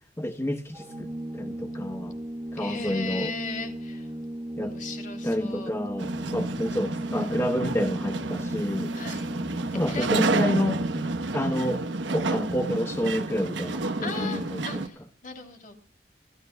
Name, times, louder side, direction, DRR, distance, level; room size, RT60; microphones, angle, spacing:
voice 1, 0.2-1.1 1.3-2.1 2.5-3.3 4.6-4.7 5.2-8.9 9.7-10.8 11.3-14.9, left 1 dB, 15° left, 6 dB, 0.9 m, -29 dB
Organ, 0.7-11.5, right 1 dB, 25° right, 1.7 m, -36 dB
voice 2, 2.6-4.1 4.6-5.7 8.9-9.3 9.9-10.2 14.0-15.7, left 3 dB, 45° left, 5 dB, 3.1 m, -37 dB
sound 1, 6.0-14.9, right 3 dB, 90° right, 1.1 m, -30 dB
26.0 x 13.5 x 2.3 m, 0.42 s
head